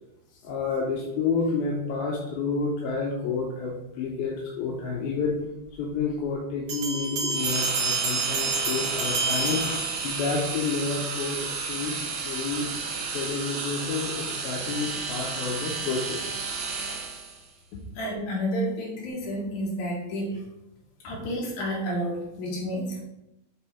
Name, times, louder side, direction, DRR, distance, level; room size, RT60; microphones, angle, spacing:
voice 1, 0.4-5.4 5.8-9.6 10.0-12.0 12.3-12.7 13.1-16.3, left 4 dB, 80° left, -2 dB, 2.4 m, -29 dB
sound 1, 6.7-10.5, right 3 dB, 55° right, 2.5 m, -29 dB
sound 2, 7.3-17.4, right 4 dB, 75° right, 3.1 m, -32 dB
voice 2, 17.9-20.4 21.0-23.0, equal, 55° left, -5 dB, 3.0 m, -30 dB
8.8 x 3.8 x 3.5 m, 0.91 s
omnidirectional pair, 5.0 m